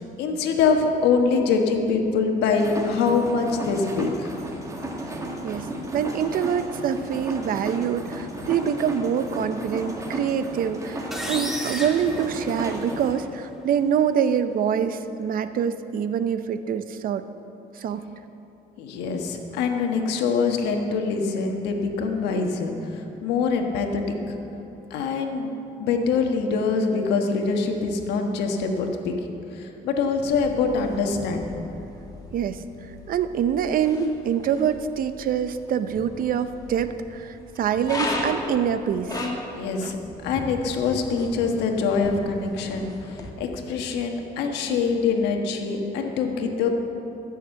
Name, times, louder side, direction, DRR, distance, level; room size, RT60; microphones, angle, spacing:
voice 1, 0.2-4.3 18.8-24.4 24.9-25.5 25.8-31.6 39.5-40.0 40.2-46.7, left 5 dB, 85° left, 3 dB, 1.4 m, -24 dB
sound 1, 2.6-13.1, right 1 dB, 20° right, 1.7 m, -34 dB
voice 2, 5.9-17.2 17.8-18.0 32.3-32.6 33.1-39.2 39.8-39.9, right 8 dB, 55° right, 11 dB, 0.7 m, -25 dB
sound 2, 11.1-13.1, equal, ahead, 1.5 m, -33 dB
sound 3, 30.2-43.3, left 2 dB, 20° left, 2.0 m, -37 dB
15.0 x 6.6 x 7.6 m, 2.9 s
cardioid pair, 110°, 17 cm